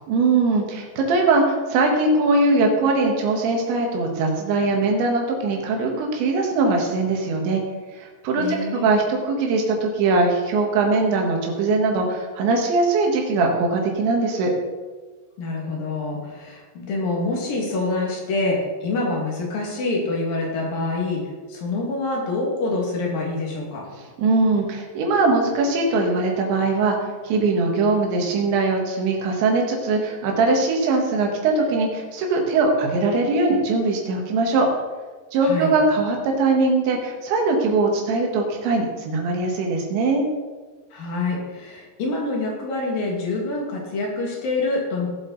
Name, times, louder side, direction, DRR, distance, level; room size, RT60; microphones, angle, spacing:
voice 1, 0.1-7.6 7.9-14.5 24.0-27.0 27.2-34.7 35.3-40.3, right 3 dB, 90° right, 1 dB, 4.1 m, -21 dB
voice 2, 8.3-8.9 15.4-23.9 35.4-35.7 40.9-45.1, left 2 dB, 55° left, -2 dB, 3.9 m, -26 dB
18.0 x 7.7 x 4.1 m, 1.3 s
omnidirectional pair, 5.1 m